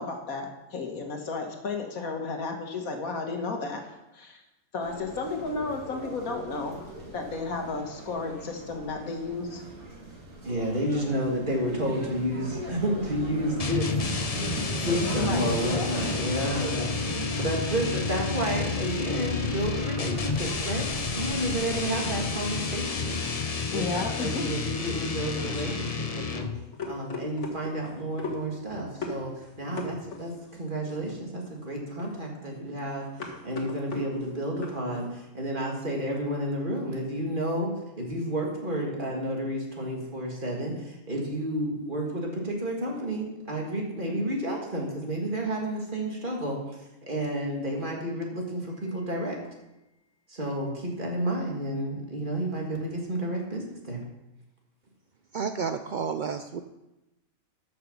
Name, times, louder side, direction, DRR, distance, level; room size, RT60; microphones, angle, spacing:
voice 1, 0.0-3.9 4.1-4.4 4.7-6.8 7.1-9.6 15.2-15.9 23.7-24.5, left 4 dB, 80° left, 3 dB, 1.9 m, -33 dB
sound 1, 4.8-23.3, right 1 dB, 65° right, 2.8 m, -38 dB
voice 2, 10.4-14.1 14.7-23.3 23.7-26.5 26.9-29.3 29.6-37.7 38.0-49.4 50.3-54.0, right 1 dB, 35° right, -1 dB, 2.4 m, -31 dB
sound 2, 13.6-26.7, left 5 dB, 40° left, 0.6 m, -31 dB
sound 3, 25.4-35.1, left 3 dB, 55° left, 1.8 m, -40 dB
voice 3, 55.3-56.6, right 6 dB, 80° right, 8 dB, 0.4 m, -31 dB
13.0 x 6.5 x 5.4 m, 0.97 s
omnidirectional pair, 1.5 m